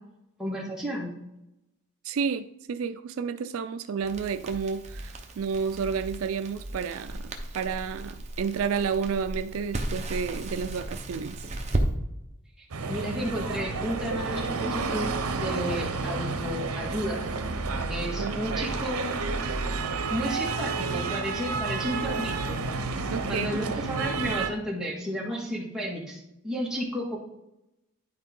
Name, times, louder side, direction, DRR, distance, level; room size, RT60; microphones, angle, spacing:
voice 1, 0.4-1.1 12.6-17.2 17.9-19.1 20.1-22.6 23.3-27.2, equal, 5° right, -4 dB, 1.8 m, -32 dB
voice 2, 2.0-11.5 18.2-18.4 23.1-23.6, right 6 dB, 70° right, 10 dB, 0.4 m, -31 dB
Crackle, 4.0-11.9, right 1 dB, 30° right, 0.8 m, -35 dB
sound 1, 12.7-24.5, right 4 dB, 90° right, 0.8 m, -30 dB
11.0 x 4.5 x 3.7 m, 0.87 s
head